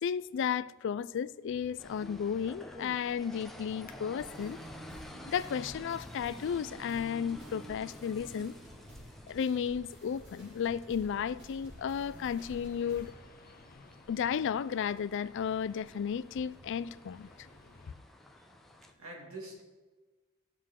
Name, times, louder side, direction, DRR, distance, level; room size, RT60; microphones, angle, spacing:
voice 1, 0.0-4.6 5.3-8.5 9.3-13.1 14.1-17.3, left 7 dB, 60° left, 0.3 m, -33 dB
sound 1, 1.5-17.9, left 2 dB, 45° left, 0.8 m, -57 dB
sound 2, 1.8-18.9, left 1 dB, ahead, 0.7 m, -51 dB
sound 3, 4.1-13.1, equal, 60° right, 3.6 m, -53 dB
voice 2, 17.8-19.6, right 2 dB, 85° right, 2.4 m, -49 dB
17.0 x 6.5 x 3.7 m
head